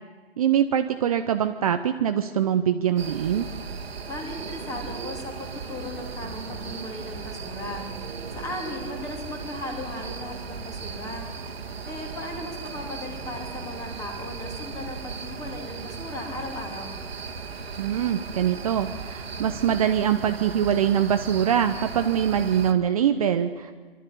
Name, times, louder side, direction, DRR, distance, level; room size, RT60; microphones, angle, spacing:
voice 1, 0.4-3.4 17.8-23.7, right 9 dB, 35° right, 8 dB, 0.7 m, -23 dB
sound 1, 3.0-22.7, right 5 dB, 75° right, 1.8 m, -37 dB
voice 2, 4.1-7.9 8.3-11.3 11.9-17.0, left 2 dB, 10° left, 2 dB, 2.9 m, -37 dB
24.0 x 12.5 x 9.9 m, 1.5 s
hypercardioid pair, 150°, 31 cm